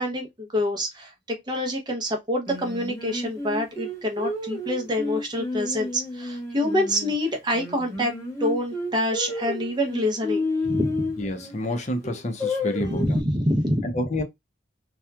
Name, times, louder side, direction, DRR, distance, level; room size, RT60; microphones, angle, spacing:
voice 1, 0.0-8.1 8.4-11.1 12.9-14.0, left 1 dB, 25° right, 0.7 m, -26 dB
Singing, 2.5-7.1 7.5-11.5 12.0-13.2, left 2 dB, 15° left, 1.1 m, -31 dB
voice 2, 11.2-13.2 13.8-14.2, left 1 dB, 35° left, 0.6 m, -29 dB
2.8 x 2.3 x 2.2 m
head